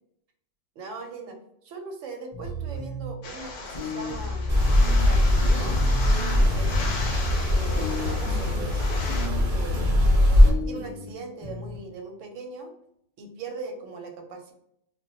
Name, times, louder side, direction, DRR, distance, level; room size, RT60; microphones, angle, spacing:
voice 1, 0.8-1.4 1.6-4.5 4.9-5.8 6.1-6.9 7.5-10.2 10.7-12.7 13.2-14.5, right 3 dB, 90° right, 3 dB, 1.0 m, -40 dB
sound 1, 2.3-3.1 3.7-5.1 5.4-8.1 9.1-9.4 9.7-11.1 11.4-11.8, equal, 40° left, 0.4 m, -34 dB
sound 2, 3.2-9.3, left 3 dB, 80° left, 0.9 m, -37 dB
sound 3, 4.5-10.5, left 1 dB, 55° right, 0.8 m, -21 dB
2.1 x 2.1 x 3.8 m, 0.75 s
omnidirectional pair, 1.3 m